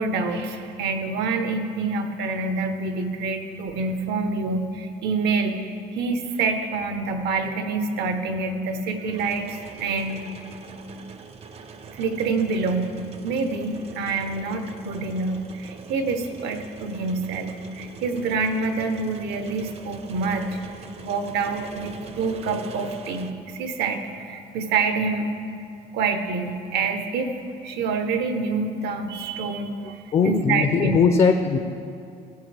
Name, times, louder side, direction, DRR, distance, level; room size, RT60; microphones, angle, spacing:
voice 1, 0.0-10.3 11.9-20.6 21.0-25.3 25.9-27.3 27.6-29.8 30.2-31.0, right 4 dB, 80° right, 7 dB, 1.0 m, -27 dB
sound 1, 6.4-6.5 9.0-23.3, right 5 dB, 35° right, 0.6 m, -43 dB
voice 2, 29.8-31.6, left 5 dB, 35° left, 7 dB, 0.5 m, -20 dB
15.0 x 7.8 x 3.4 m, 2.5 s
cardioid pair, 110°, 17 cm